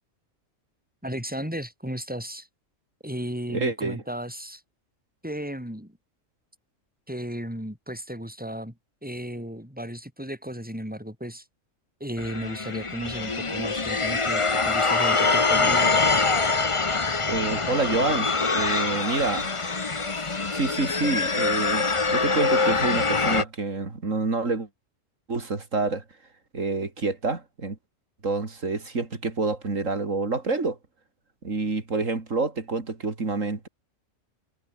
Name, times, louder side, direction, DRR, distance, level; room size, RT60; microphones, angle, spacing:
voice 1, 1.0-2.5 3.0-4.6 5.2-6.0 7.1-8.7 9.0-11.4 12.0-15.9, equal, 5° right, 7.9 m, -34 dB
voice 2, 3.5-4.0 17.3-19.5 20.5-24.7 25.3-26.0 26.5-27.8 28.2-30.8 31.4-33.7, right 3 dB, 85° right, 3.5 m, -27 dB
sound 1, 12.2-23.4, left 4 dB, 25° left, 1.1 m, -24 dB
omnidirectional pair, 1.3 m